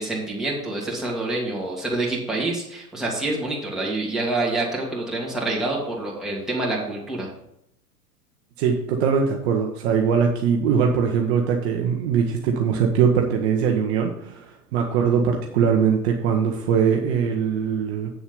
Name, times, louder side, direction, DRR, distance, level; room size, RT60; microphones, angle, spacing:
voice 1, 0.0-7.3, right 2 dB, ahead, -4 dB, 2.6 m, -27 dB
voice 2, 8.6-18.1, right 7 dB, 40° right, 2 dB, 1.3 m, -21 dB
8.3 x 7.1 x 5.4 m, 0.78 s
figure-of-eight pair, 105°, 48 cm